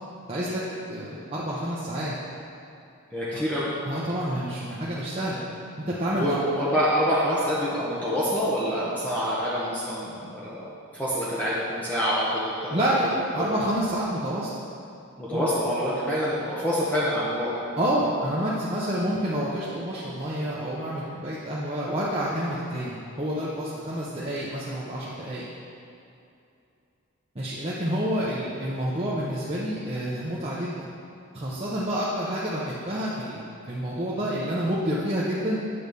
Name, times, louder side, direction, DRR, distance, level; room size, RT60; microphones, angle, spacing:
voice 1, 0.3-0.6 0.9-2.2 3.3-3.4 3.8-5.4 5.9-6.4 12.7-14.5 15.3-15.5 17.8-25.5 27.3-30.8 31.3-35.6, equal, 25° right, -8 dB, 0.9 m, -28 dB
voice 2, 3.1-3.7 6.1-10.7 10.9-12.7 13.0-13.1 15.2-17.5, equal, 5° left, -9 dB, 1.2 m, -26 dB
8.7 x 4.8 x 6.9 m, 2.6 s
head